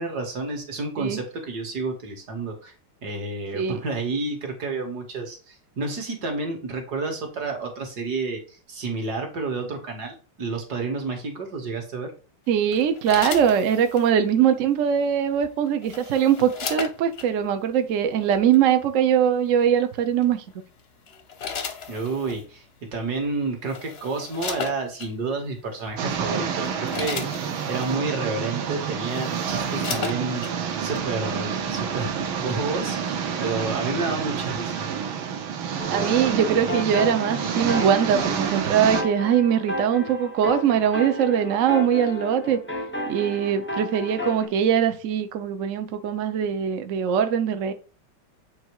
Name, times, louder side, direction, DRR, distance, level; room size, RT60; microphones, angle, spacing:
voice 1, 0.0-2.7 3.0-12.1 21.9-30.5 30.8-34.9, right 3 dB, 55° right, 2.0 m, -30 dB
voice 2, 12.5-20.4 35.9-42.6 43.1-47.7, right 8 dB, 70° right, 0.7 m, -22 dB
sound 1, 12.7-14.1 15.4-17.3 18.3-18.6 20.2-20.5 21.1-22.4 23.2-23.3 23.6-25.1 25.8-26.0 26.4-27.9 28.6-28.7 29.0-30.5 31.0-31.1, left 6 dB, 55° left, 0.7 m, -35 dB
sound 2, 26.0-39.0, right 7 dB, 85° right, 1.7 m, -28 dB
sound 3, 35.8-44.5, equal, 10° left, 0.5 m, -33 dB
8.0 x 2.9 x 4.6 m
omnidirectional pair, 2.2 m